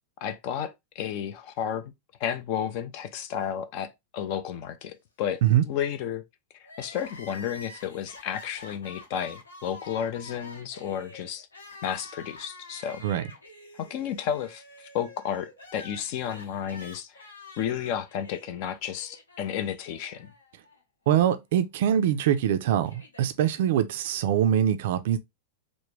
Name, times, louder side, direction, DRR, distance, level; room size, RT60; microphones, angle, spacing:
voice 1, 0.2-1.9 2.2-5.4 5.7-6.2 6.8-11.5 11.8-13.0 13.8-17.1 17.6-20.3, left 9 dB, 45° left, 0.4 m, -32 dB
Crying sobbing, 6.6-20.8 21.1-21.2 22.2-23.3, left 2 dB, 80° left, 0.9 m, -48 dB
voice 2, 21.1-25.2, right 10 dB, 55° right, 0.3 m, -23 dB
3.3 x 2.1 x 3.2 m
figure-of-eight pair, 95°, 0 cm